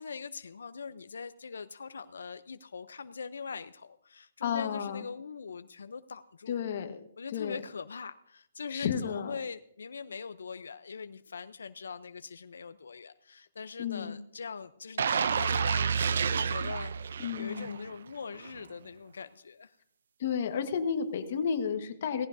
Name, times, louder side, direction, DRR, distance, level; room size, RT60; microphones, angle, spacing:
voice 1, 0.0-6.6 7.2-19.8, left 5 dB, 80° left, 11 dB, 0.6 m, -42 dB
voice 2, 4.4-5.0 6.5-7.0 7.3-7.6 8.7-9.4 13.8-14.1 17.2-17.8 20.2-22.3, left 7 dB, 40° left, 7 dB, 1.3 m, -32 dB
sound 1, 15.0-17.9 18.3-18.5, right 6 dB, 55° right, 0.5 m, -29 dB
17.5 x 15.5 x 2.7 m, 0.71 s
hypercardioid pair, 170°, 0 cm